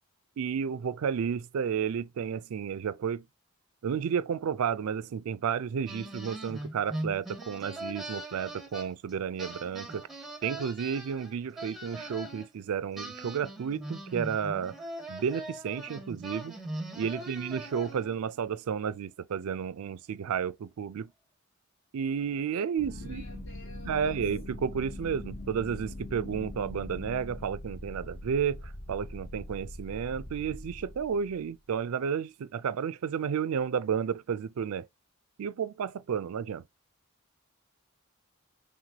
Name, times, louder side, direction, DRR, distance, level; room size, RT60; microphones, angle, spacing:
voice 1, 0.4-3.3 3.8-10.1 10.4-14.8 15.1-16.5 16.9-21.1 21.9-23.4 23.8-34.9 35.4-36.6, right 7 dB, 75° right, 0.4 m, -32 dB
sound 1, 5.9-9.1 9.4-12.5 13.0-18.2, right 1 dB, ahead, 0.7 m, -40 dB
voice 2, 17.0-17.3 22.8-24.2, left 1 dB, 60° left, 1.9 m, -52 dB
sound 2, 22.8-31.5, left 1 dB, 35° left, 0.7 m, -42 dB
5.9 x 2.2 x 2.8 m
head